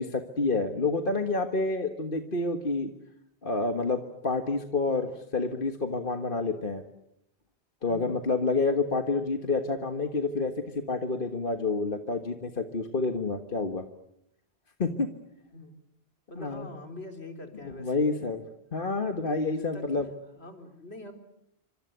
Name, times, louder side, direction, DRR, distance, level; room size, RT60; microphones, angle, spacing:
voice 1, 0.0-2.9 3.4-6.8 7.8-13.8 14.8-15.1 16.4-16.7 17.6-18.4 18.7-20.1, left 3 dB, 55° left, 6 dB, 1.8 m, -28 dB
voice 2, 7.8-8.2 15.5-15.7 16.3-18.0 19.5-20.0 20.3-21.1, left 1 dB, 70° left, 5 dB, 4.2 m, -44 dB
28.5 x 26.0 x 8.2 m, 0.79 s
omnidirectional pair, 1.1 m